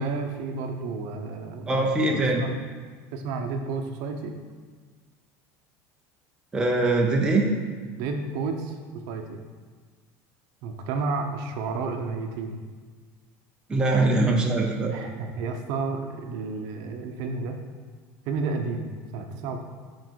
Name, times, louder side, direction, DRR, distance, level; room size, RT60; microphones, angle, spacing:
voice 1, 0.0-1.8 2.2-2.5 3.1-4.3 7.9-8.7 9.1-9.4 10.6-12.6 14.8-17.6 18.3-19.6, right 4 dB, 55° right, 4 dB, 0.8 m, -31 dB
voice 2, 1.7-2.4 6.5-7.5 13.7-14.9, right 2 dB, 10° right, 0 dB, 0.6 m, -22 dB
8.7 x 4.7 x 4.6 m, 1.5 s
cardioid pair, 165°, 8 cm